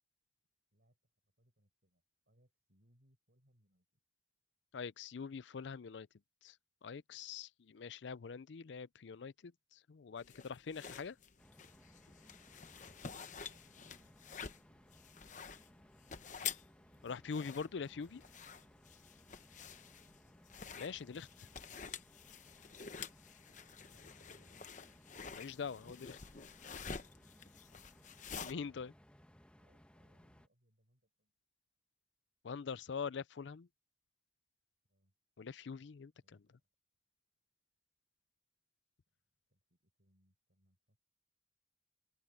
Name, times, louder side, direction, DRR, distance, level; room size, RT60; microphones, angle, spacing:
voice 1, 1.4-3.9 13.3-14.6 19.6-20.2 23.6-24.6 27.9-28.1 29.5-31.3 34.8-35.1 36.2-36.6 39.5-41.0, equal, 60° right, 5.2 m, -75 dB
voice 2, 4.7-6.1 6.4-6.6 6.8-11.2 17.0-18.2 20.7-21.5 25.3-26.2 28.4-28.9 32.4-33.7 35.4-36.1, left 5 dB, 70° left, 0.5 m, -44 dB
sound 1, 10.2-28.5, left 6 dB, 40° left, 0.9 m, -49 dB
sound 2, 11.4-30.5, equal, 5° left, 1.4 m, -63 dB
open air
head